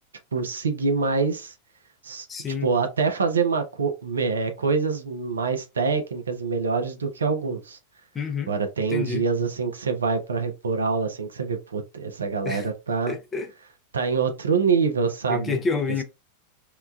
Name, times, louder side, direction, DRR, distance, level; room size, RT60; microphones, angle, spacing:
voice 1, 0.3-1.5 2.0-2.3 2.6-7.8 8.5-13.2 13.9-15.6, right 5 dB, 70° right, 0.5 m, -25 dB
voice 2, 2.3-2.7 8.1-8.5 8.9-9.2 12.4-12.7 13.1-13.5 15.3-16.0, left 5 dB, 20° left, 0.5 m, -28 dB
2.9 x 2.1 x 2.3 m
figure-of-eight pair, 90°, 0 cm